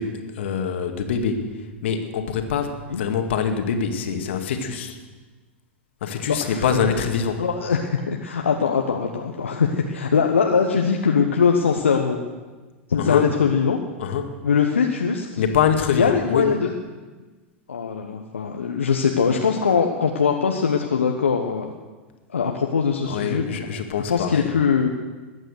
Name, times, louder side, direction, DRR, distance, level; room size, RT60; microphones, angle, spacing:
voice 1, 0.0-5.0 6.0-7.4 13.0-13.3 14.0-14.4 15.4-16.5 23.1-24.5, left 7 dB, 65° left, 5 dB, 2.1 m, -24 dB
voice 2, 7.4-12.2 12.9-13.8 14.4-15.4 15.9-16.7 17.7-21.7 22.3-23.6 24.1-24.9, left 6 dB, 80° left, 2 dB, 1.3 m, -21 dB
21.0 x 8.9 x 6.6 m, 1.3 s
hypercardioid pair, 95°, 7 cm